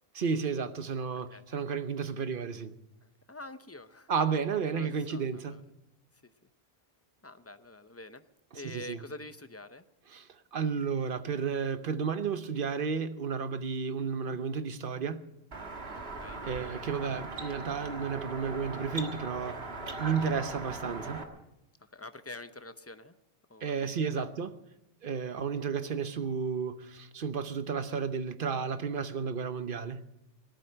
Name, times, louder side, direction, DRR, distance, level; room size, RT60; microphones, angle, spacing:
voice 1, 0.1-2.7 4.1-5.6 8.5-9.0 10.1-15.3 16.4-19.6 20.0-21.3 23.6-24.5 25.0-30.0, right 6 dB, 60° right, 1.0 m, -32 dB
voice 2, 3.0-4.1 4.7-5.6 6.2-6.3 7.2-8.2 8.5-9.8 16.0-16.4 20.1-20.4 21.8-23.1 23.5-24.3 25.5-25.6, left 2 dB, 15° left, 0.6 m, -47 dB
sound 1, 15.5-21.2, right 2 dB, 80° right, 1.9 m, -40 dB
18.5 x 12.0 x 6.6 m
omnidirectional pair, 1.0 m